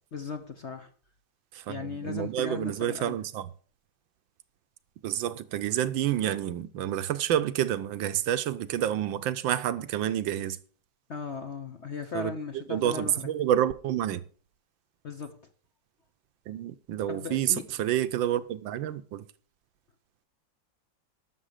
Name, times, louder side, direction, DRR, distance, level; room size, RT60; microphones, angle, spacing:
voice 1, 0.1-0.9 1.7-3.2 11.1-13.3 15.0-15.4 17.1-17.6, left 5 dB, 50° left, 0.9 m, -37 dB
voice 2, 1.5-3.5 5.0-10.6 12.1-12.3 12.7-14.2 16.5-19.3, right 11 dB, 80° right, 1.5 m, -29 dB
11.5 x 6.8 x 6.5 m
omnidirectional pair, 2.1 m